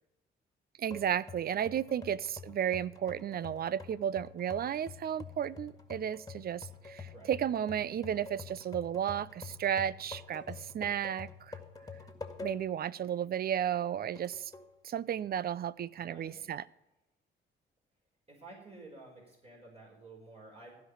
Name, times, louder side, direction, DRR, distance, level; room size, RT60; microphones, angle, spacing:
voice 1, 0.8-11.6 12.4-14.5 14.8-16.6, right 9 dB, 50° right, 20 dB, 0.6 m, -33 dB
sound 1, 0.9-12.8 13.3-13.4 14.1-14.7, left 5 dB, 20° left, 2.0 m, -48 dB
voice 2, 7.1-7.4 16.0-16.4 18.3-20.7, right 2 dB, 30° right, -2 dB, 4.9 m, -52 dB
15.5 x 5.2 x 9.8 m, 0.90 s
cardioid pair, 90°, 20 cm